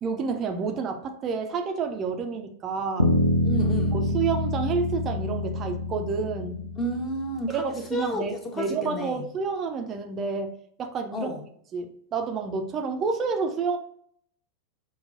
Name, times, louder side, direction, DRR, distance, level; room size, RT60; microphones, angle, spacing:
voice 1, 0.0-3.1 3.9-6.7 7.5-11.3 11.7-13.8, right 5 dB, 30° right, 5 dB, 0.5 m, -29 dB
sound 1, 3.0-7.4, left 1 dB, 90° left, 0.4 m, -26 dB
voice 2, 3.4-4.0 6.7-9.2 11.1-11.4, equal, 20° left, 2 dB, 0.9 m, -31 dB
5.8 x 2.2 x 2.5 m, 0.66 s
figure-of-eight pair, 90°, 0 cm